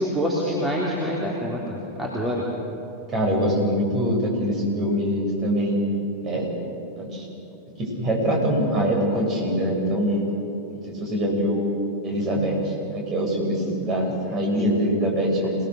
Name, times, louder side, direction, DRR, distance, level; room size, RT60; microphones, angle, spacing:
voice 1, 0.0-2.4, equal, 10° right, -4 dB, 3.5 m, -26 dB
voice 2, 3.1-5.8 6.2-6.5 7.0-7.3 7.8-10.2 10.7-11.8 12.0-15.6, equal, 30° right, -1 dB, 7.8 m, -24 dB
28.0 x 19.5 x 6.7 m, 2.8 s
figure-of-eight pair, 90°, 0 cm